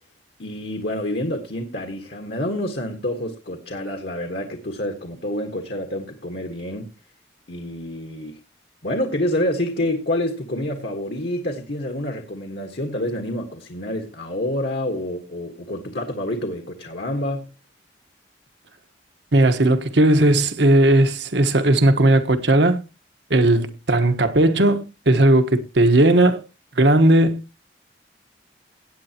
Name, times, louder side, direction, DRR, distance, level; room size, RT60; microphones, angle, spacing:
voice 1, 0.4-6.9 7.5-8.4 8.8-17.5, left 1 dB, 60° left, 1.5 m, -28 dB
voice 2, 19.3-22.8 23.3-26.4 26.8-27.6, right 1 dB, 70° right, 1.3 m, -17 dB
17.5 x 8.8 x 2.9 m
head